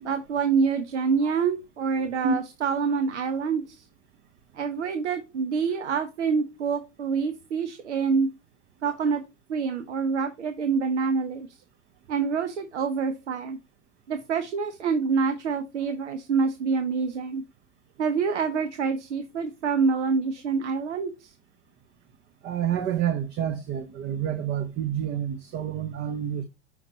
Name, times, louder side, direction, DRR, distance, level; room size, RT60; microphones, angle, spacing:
voice 1, 0.0-3.9 4.5-8.3 8.8-9.2 9.5-11.6 12.1-13.6 14.1-17.4 18.0-21.3, right 5 dB, 75° right, 0.9 m, -26 dB
voice 2, 22.4-26.4, right 8 dB, 30° right, 0.9 m, -28 dB
5.8 x 5.8 x 2.8 m
hypercardioid pair, 100°, 35 cm